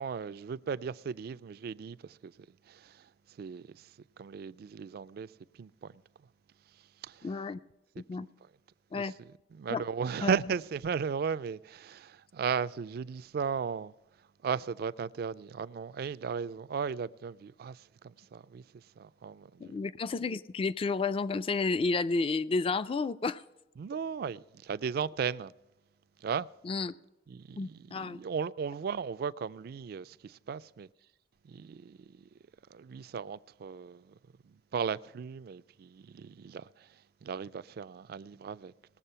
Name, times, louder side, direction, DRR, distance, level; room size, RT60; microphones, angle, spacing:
voice 1, 0.0-2.3 2.7-3.1 3.4-3.9 4.2-5.3 5.6-5.9 7.0-7.3 8.2-8.3 8.9-9.1 9.5-13.9 14.4-18.6 19.0-19.7 23.8-25.5 26.2-26.5 27.3-30.9 31.4-32.3 32.7-34.1 34.5-36.9 37.2-38.7, right 6 dB, 55° right, 0.3 m, -36 dB
voice 2, 7.2-7.6 8.0-8.3 8.9-9.1 9.7-9.8 10.2-10.3 19.6-23.4 26.6-26.9 27.6-28.2, left 4 dB, 30° left, 0.3 m, -31 dB
19.0 x 7.3 x 5.5 m
head